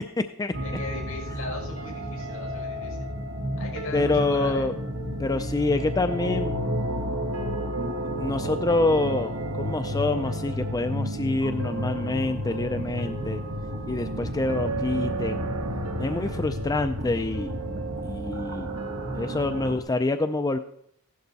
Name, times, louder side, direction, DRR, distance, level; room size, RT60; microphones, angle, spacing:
voice 1, 0.0-0.5 3.9-4.7 5.2-6.5 8.2-9.3 9.6-13.4 13.9-15.4 16.0-17.5 18.0-18.7 19.2-20.6, left 2 dB, 15° left, 7 dB, 0.4 m, -26 dB
sound 1, 0.5-19.8, equal, 70° right, 1.5 m, -31 dB
voice 2, 0.6-3.1 3.6-4.7, left 2 dB, 65° left, 0 dB, 5.3 m, -38 dB
15.5 x 11.5 x 4.1 m, 0.71 s
head